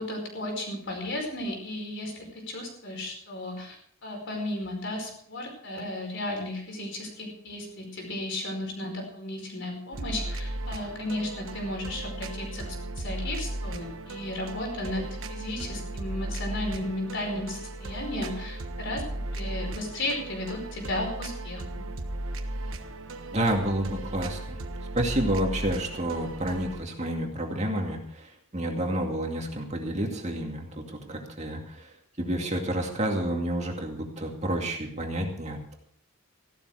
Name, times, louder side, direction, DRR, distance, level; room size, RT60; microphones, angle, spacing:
voice 1, 0.0-3.8 4.0-19.0 19.3-21.8, left 1 dB, 55° left, 2 dB, 4.9 m, -34 dB
sound 1, 9.9-26.8, right 1 dB, 65° right, 1.3 m, -36 dB
voice 2, 23.3-24.6 24.9-35.8, right 1 dB, 30° right, 1 dB, 2.3 m, -30 dB
15.5 x 12.0 x 4.9 m, 0.66 s
head